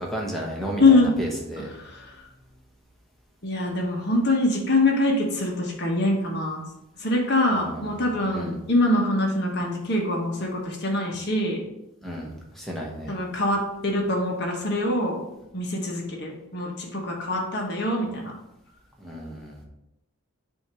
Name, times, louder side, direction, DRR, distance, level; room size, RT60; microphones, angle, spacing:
voice 1, 0.0-1.7 7.5-8.1 8.3-8.5 12.0-12.3 12.5-13.1 19.0-19.6, equal, ahead, -2 dB, 1.0 m, -33 dB
voice 2, 0.8-1.1 1.7-2.1 3.4-6.6 7.0-11.6 13.1-15.2 15.5-18.3, left 2 dB, 50° left, 0 dB, 1.2 m, -24 dB
7.2 x 2.9 x 4.8 m, 0.89 s
head